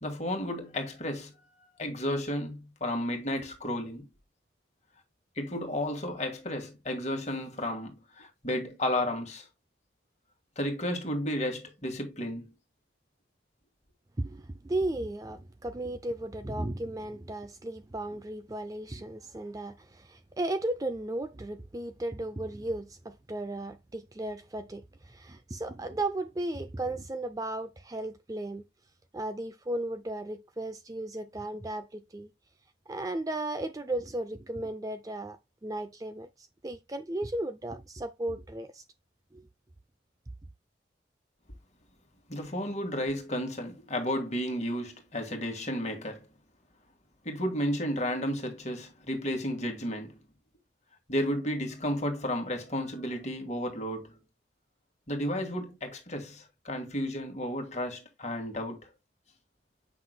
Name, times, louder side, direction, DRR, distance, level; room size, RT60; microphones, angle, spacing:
voice 1, 0.0-1.3 1.8-4.1 5.3-9.5 10.5-12.5 42.3-46.3 47.2-50.2 51.1-54.2 55.1-58.9, equal, 40° left, 1.7 m, -32 dB
voice 2, 14.2-28.6 29.1-32.3 32.9-38.8 39.3-39.4, right 1 dB, 20° right, 0.4 m, -35 dB
7.6 x 5.9 x 2.2 m
head